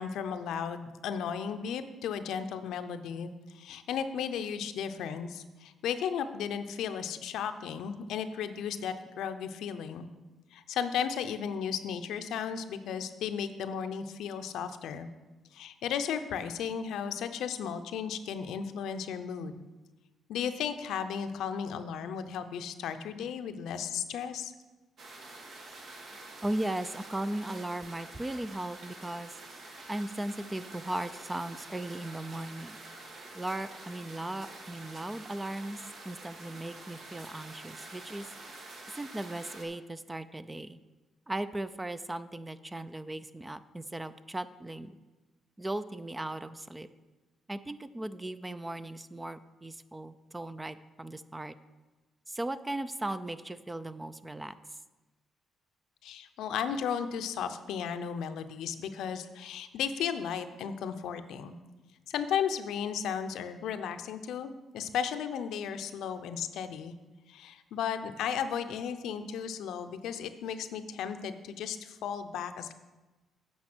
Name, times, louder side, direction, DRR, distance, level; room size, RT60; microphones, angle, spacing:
voice 1, 0.0-10.1 10.5-15.1 15.5-19.6 20.3-24.5 56.0-61.6 62.1-66.9 67.3-72.7, left 7 dB, 80° left, 9 dB, 0.6 m, -35 dB
sound 1, 25.0-39.7, right 2 dB, 60° right, 1.4 m, -47 dB
voice 2, 26.4-29.3 29.9-32.8 33.3-38.3 38.9-40.8 41.3-45.0 45.6-46.9 47.5-51.6 52.3-54.5, right 1 dB, 15° right, 13 dB, 0.4 m, -37 dB
8.6 x 5.4 x 6.1 m, 1.2 s
cardioid pair, 90°, 0 cm